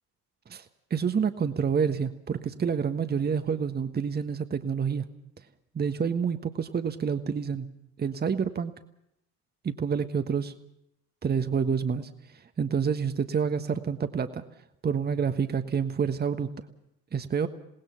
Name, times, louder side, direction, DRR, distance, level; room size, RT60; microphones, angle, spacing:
voice 1, 0.9-5.1 5.7-7.7 8.0-8.7 9.6-10.5 11.2-12.1 12.6-14.4 14.8-16.5 17.1-17.5, right 6 dB, 20° right, 9 dB, 1.4 m, -28 dB
27.5 x 19.0 x 5.9 m, 0.77 s
figure-of-eight pair, 60°, 45 cm